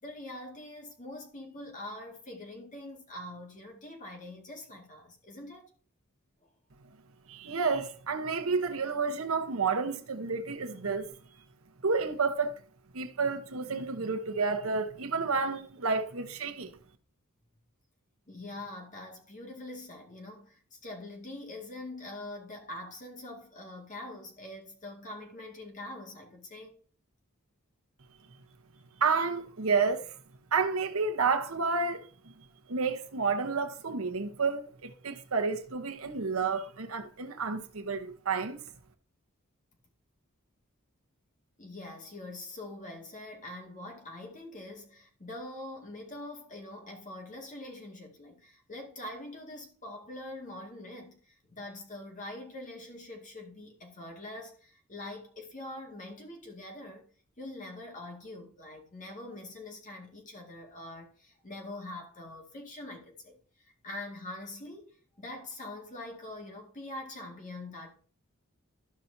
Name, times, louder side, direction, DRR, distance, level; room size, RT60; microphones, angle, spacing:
voice 1, 0.0-5.7 6.4-6.5 18.3-26.7 41.6-57.1 57.4-63.4 63.6-67.9, left 1 dB, 35° left, 2.0 m, -44 dB
voice 2, 7.3-11.1 11.8-12.6 12.9-16.7 29.0-30.1 30.5-32.1 32.7-38.6, right 4 dB, 75° right, 1.0 m, -30 dB
12.5 x 5.8 x 2.7 m
head